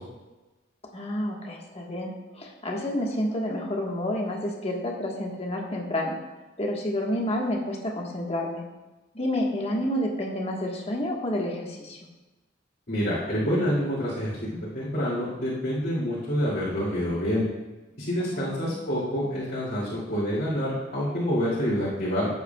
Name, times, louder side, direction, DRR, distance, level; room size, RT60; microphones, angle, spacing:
voice 1, 0.9-6.2 6.6-8.6 9.1-12.0 18.2-18.7, left 1 dB, 30° left, -1 dB, 1.6 m, -29 dB
voice 2, 12.9-14.4 14.7-17.4 18.0-22.3, equal, 50° left, -9 dB, 2.8 m, -27 dB
14.5 x 8.3 x 2.4 m, 1.1 s
head